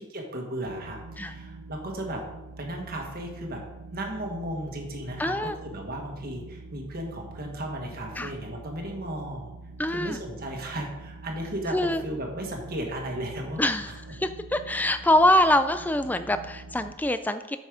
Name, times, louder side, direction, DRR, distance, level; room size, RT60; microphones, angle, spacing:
voice 1, 0.0-2.2 2.6-3.6 3.9-9.5 9.9-13.6 13.9-14.0, right 1 dB, 45° right, 1 dB, 1.5 m, -35 dB
sound 1, 0.7-16.9, right 3 dB, 80° right, 0.8 m, -45 dB
voice 2, 5.2-5.6 8.2-8.3 9.8-10.2 11.7-12.0 13.6-13.9 14.2-17.6, left 1 dB, 10° left, 11 dB, 0.3 m, -24 dB
8.1 x 5.4 x 5.0 m, 1.0 s
head